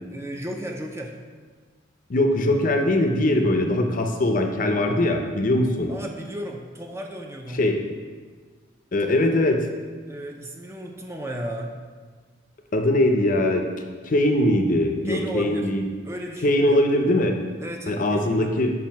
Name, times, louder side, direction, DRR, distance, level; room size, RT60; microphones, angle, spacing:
voice 1, 0.1-1.1 5.9-7.7 9.0-9.2 10.1-11.8 15.0-15.7 16.0-16.9 17.6-18.6, equal, 15° right, 2 dB, 0.4 m, -34 dB
voice 2, 2.1-5.9 7.5-7.8 8.9-9.7 12.7-13.6 14.0-15.9 16.4-17.4 17.9-18.7, left 1 dB, 45° left, 4 dB, 0.5 m, -21 dB
7.1 x 2.6 x 5.7 m, 1.5 s
head